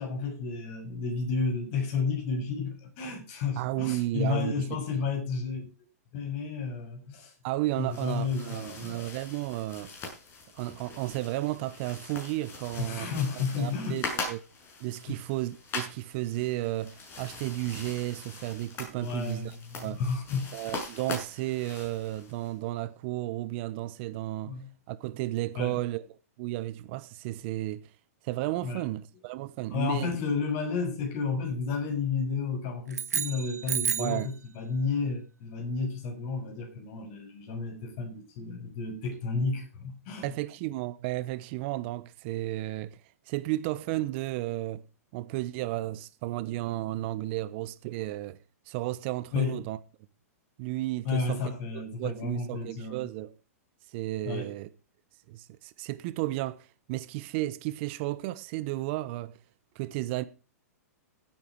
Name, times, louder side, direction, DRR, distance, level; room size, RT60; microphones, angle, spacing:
voice 1, 0.0-5.7 6.1-7.3 7.8-9.0 12.8-14.0 15.1-15.2 19.0-20.5 24.4-24.7 25.6-25.8 28.6-28.8 29.7-40.3 49.3-49.6 51.0-53.1 54.2-54.5, left 4 dB, 45° left, 6.9 m, -32 dB
voice 2, 3.6-4.8 7.4-9.9 10.5-13.1 13.6-14.4 14.8-20.0 20.5-24.5 24.9-27.9 28.2-30.2 34.0-34.3 40.2-43.0 43.3-44.8 45.1-48.4 48.7-49.8 50.6-53.3 53.9-54.7 55.3-59.4 59.7-60.2, right 17 dB, 45° right, 1.1 m, -33 dB
sound 1, 7.7-22.5, left 3 dB, 30° left, 6.8 m, -42 dB
sound 2, 32.9-34.3, right 7 dB, 90° right, 1.3 m, -31 dB
15.0 x 9.3 x 4.7 m
hypercardioid pair, 130°, 8 cm